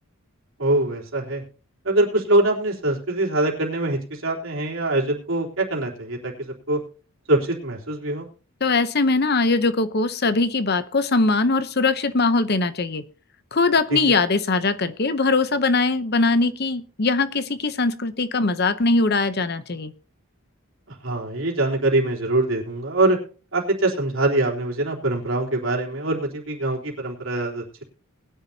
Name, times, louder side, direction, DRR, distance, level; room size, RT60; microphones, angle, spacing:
voice 1, 0.6-1.4 1.8-6.8 7.3-8.3 13.9-14.0 20.9-23.2 23.5-27.8, right 2 dB, 65° right, -1 dB, 3.7 m, -23 dB
voice 2, 8.6-13.0 13.5-19.9, left 3 dB, 45° left, 12 dB, 0.8 m, -21 dB
20.5 x 10.5 x 2.8 m, 0.36 s
head